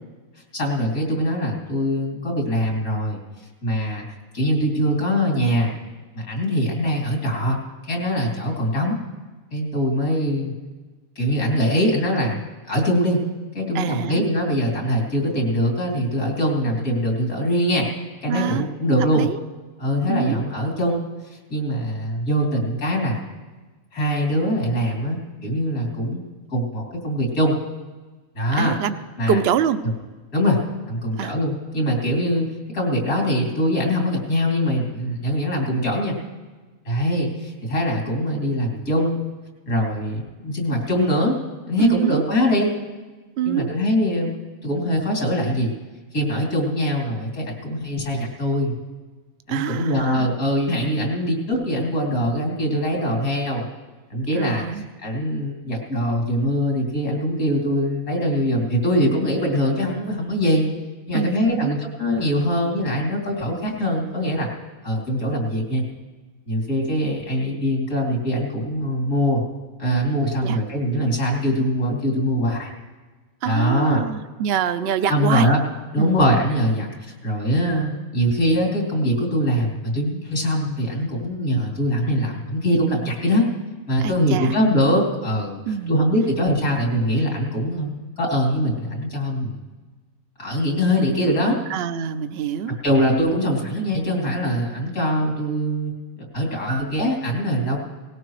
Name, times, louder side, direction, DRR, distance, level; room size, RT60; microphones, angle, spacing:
voice 1, 0.5-3.2 3.6-4.0 4.3-5.7 6.1-7.6 7.9-9.0 9.5-10.5 11.2-12.4 12.6-13.2 13.5-17.9 18.2-19.3 19.8-21.0 21.5-23.2 23.9-26.2 26.5-27.6 28.4-28.7 29.2-29.4 30.3-30.6 30.9-32.5 32.7-36.2 36.9-39.3 39.7-41.4 41.7-42.7 43.5-44.3 44.6-45.7 46.1-48.7 49.5-53.7 54.1-60.7 61.1-64.5 64.8-65.8 66.5-69.4 69.8-72.7 73.4-74.0 75.1-75.6 75.9-76.9 77.2-83.5 83.9-85.6 85.9-89.6 90.4-91.6 92.8-95.9 96.2-97.8, equal, 80° left, -1 dB, 3.5 m, -22 dB
voice 2, 13.7-14.2 18.3-18.8 19.1-19.4 20.1-20.4 28.6-28.9 29.2-29.8 31.2-31.3 41.8-42.3 43.4-43.7 49.5-50.3 54.3-54.9 61.1-61.8 70.4-70.6 73.4-75.5 76.0-76.2 84.0-84.5 85.7-86.1 91.7-92.8, right 9 dB, 55° right, 12 dB, 0.8 m, -25 dB
19.0 x 16.5 x 3.2 m, 1.3 s
omnidirectional pair, 1.5 m